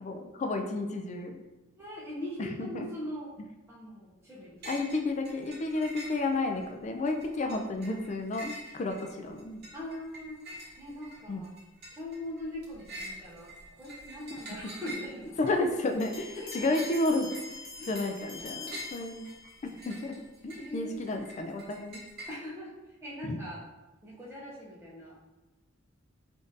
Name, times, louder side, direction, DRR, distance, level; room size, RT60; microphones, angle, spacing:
voice 1, 0.0-1.4 2.4-2.9 4.7-9.6 11.3-11.4 15.4-17.3 17.9-19.2 19.6-22.0 23.2-23.4, left 2 dB, 35° left, 4 dB, 0.3 m, -31 dB
voice 2, 1.8-3.3 3.7-4.6 9.7-10.4 10.8-11.5 11.9-15.4 16.4-16.9 17.7-18.1 20.5-21.1 22.3-23.6 24.0-25.2, left 1 dB, 15° right, -6 dB, 0.6 m, -41 dB
sound 1, 4.6-5.0 5.3-6.6 7.1-22.3, right 1 dB, 50° right, 0.8 m, -46 dB
sound 2, 16.0-19.8, left 4 dB, 85° left, 0.8 m, -45 dB
3.6 x 2.5 x 2.6 m, 1.1 s
head